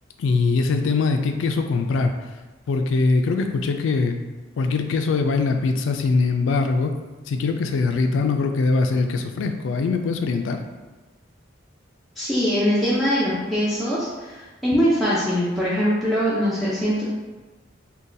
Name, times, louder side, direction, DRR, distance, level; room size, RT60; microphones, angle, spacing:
voice 1, 0.2-2.1 2.7-4.2 4.6-6.9 7.3-10.6, left 4 dB, 75° left, 5 dB, 0.3 m, -22 dB
voice 2, 12.2-17.0, equal, ahead, -10 dB, 0.5 m, -22 dB
3.9 x 2.2 x 2.6 m, 1.2 s
head